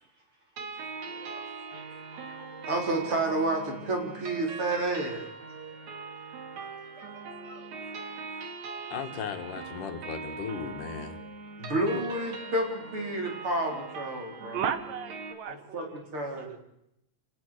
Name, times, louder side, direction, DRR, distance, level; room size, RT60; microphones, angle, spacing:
sound 1, 0.6-15.3, right 4 dB, 60° right, 3.4 m, -41 dB
voice 1, 1.0-1.4 1.7-1.8 2.1-5.2 7.0-7.1 7.4-8.0 11.6-14.6 15.5-16.6, right 2 dB, 40° right, 2 dB, 5.2 m, -31 dB
voice 2, 8.9-11.2, left 7 dB, 70° left, 7 dB, 3.1 m, -36 dB
voice 3, 14.5-16.6, right 8 dB, 80° right, 11 dB, 3.1 m, -35 dB
28.5 x 18.5 x 6.7 m, 0.81 s
omnidirectional pair, 3.9 m